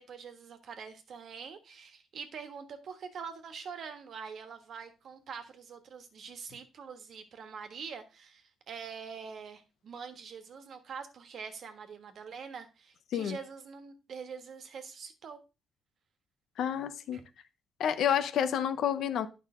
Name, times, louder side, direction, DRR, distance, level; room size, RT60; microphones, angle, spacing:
voice 1, 0.0-15.4 17.1-17.2, right 6 dB, 60° right, 1.4 m, -44 dB
voice 2, 16.6-17.2 17.8-19.3, left 9 dB, 75° left, 0.8 m, -29 dB
9.4 x 5.6 x 3.7 m
cardioid pair, 90°, 0 cm